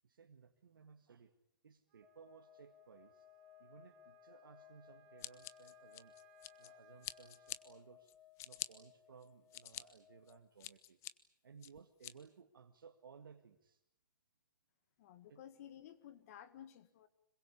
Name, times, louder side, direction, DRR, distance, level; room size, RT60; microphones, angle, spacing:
voice 1, 0.0-1.3 1.6-3.3 3.6-6.1 6.6-8.1 8.4-11.0 11.4-13.8 15.3-15.4, right 6 dB, 75° right, 4 dB, 2.0 m, -60 dB
Wind instrument woodwind instrument, 1.9-7.6, right 15 dB, 30° right, 6.5 m, -70 dB
sound 1, 2.0-10.4, left 11 dB, ahead, 1.3 m, -63 dB
Scissors, 5.2-6.7 7.0-7.6 8.1-8.7 9.2-9.8 10.3-11.1 11.6-12.1, left 14 dB, 25° left, 1.2 m, -46 dB
voice 2, 15.0-17.1, left 10 dB, 45° left, 11 dB, 1.8 m, -55 dB
26.0 x 22.5 x 8.6 m, 0.80 s
hypercardioid pair, 135°, 11 cm